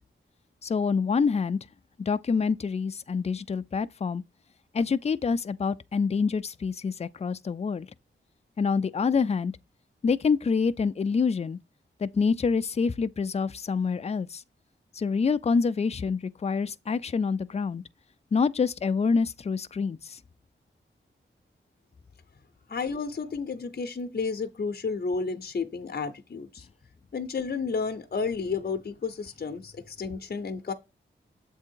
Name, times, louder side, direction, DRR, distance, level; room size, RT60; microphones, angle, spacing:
voice 1, 0.6-1.6 2.1-4.2 4.7-7.9 8.6-9.5 10.0-11.6 12.0-14.4 15.0-17.8 18.3-20.2, left 5 dB, 30° left, 0.4 m, -26 dB
voice 2, 22.7-26.7 27.1-30.7, left 4 dB, 50° left, 0.8 m, -31 dB
7.5 x 3.6 x 4.5 m
wide cardioid pair, 125°, 21 cm